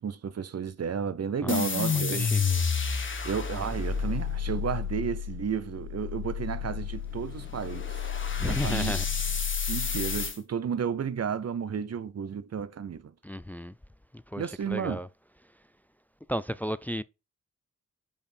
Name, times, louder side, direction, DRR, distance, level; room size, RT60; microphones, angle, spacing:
voice 1, 0.0-2.3 3.2-8.0 8.4-8.9 9.6-13.1 14.4-15.0, right 7 dB, 55° right, 0.7 m, -32 dB
sound 1, 1.5-10.4, left 6 dB, 40° left, 1.2 m, -30 dB
voice 2, 1.9-2.4 8.4-9.1 13.2-13.7 14.3-15.1 16.3-17.0, equal, 5° left, 0.3 m, -33 dB
5.4 x 5.0 x 4.4 m
cardioid pair, 60°, 31 cm